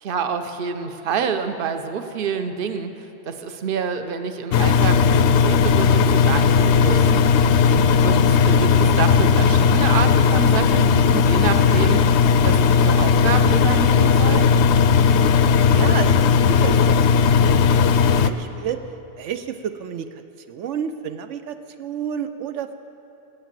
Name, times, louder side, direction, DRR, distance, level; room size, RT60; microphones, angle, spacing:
voice 1, 0.0-7.1 8.0-12.0 12.4-14.5, right 6 dB, 50° right, 8 dB, 0.9 m, -27 dB
Engine, 4.5-18.3, left 6 dB, 70° left, 0.8 m, -16 dB
voice 2, 15.7-17.2 18.0-18.8 19.2-20.2 20.5-22.7, right 8 dB, 80° right, 9 dB, 0.9 m, -30 dB
20.5 x 8.6 x 7.4 m, 2.9 s
omnidirectional pair, 1.2 m